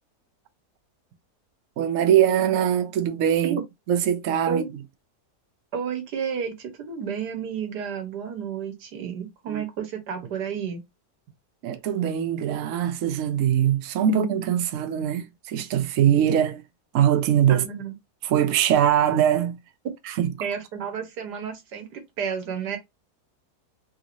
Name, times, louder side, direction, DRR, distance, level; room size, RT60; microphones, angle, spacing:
voice 1, 1.8-3.6 3.9-4.6 9.5-9.6 11.6-16.6 16.9-17.6 18.2-19.6 20.2-20.3, right 10 dB, 65° right, 0.9 m, -22 dB
voice 2, 5.7-10.8 17.5-17.9 20.4-22.8, right 7 dB, 85° right, 1.5 m, -31 dB
3.6 x 2.5 x 2.9 m
omnidirectional pair, 1.7 m